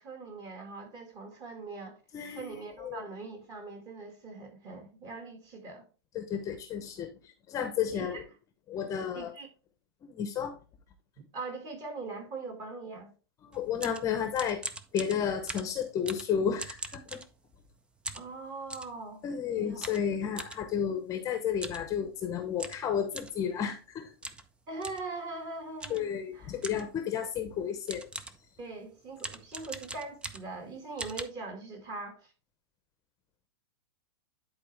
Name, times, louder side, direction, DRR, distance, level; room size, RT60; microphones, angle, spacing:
voice 1, 0.0-2.0 2.3-5.9 7.9-8.2 9.1-9.5 11.3-13.1 18.1-19.3 19.5-19.9 24.7-26.6 28.6-32.3, right 3 dB, 25° right, 2.1 m, -41 dB
voice 2, 6.1-7.1 7.5-8.2 8.7-9.3 10.1-10.6 13.5-14.6 14.9-17.2 19.2-24.1 25.9-28.0, left 8 dB, 25° left, 0.8 m, -32 dB
sound 1, 13.5-17.7 18.0-19.0 19.8-20.6 21.5-21.9 22.1-22.2 22.6-23.4 24.2-24.5 24.8-25.1 25.8-26.1 26.6-27.0 27.5-27.6 27.9-28.5 29.2-30.6 31.0-31.2, right 3 dB, 5° right, 0.4 m, -41 dB
10.5 x 4.2 x 3.3 m
hypercardioid pair, 140°, 14 cm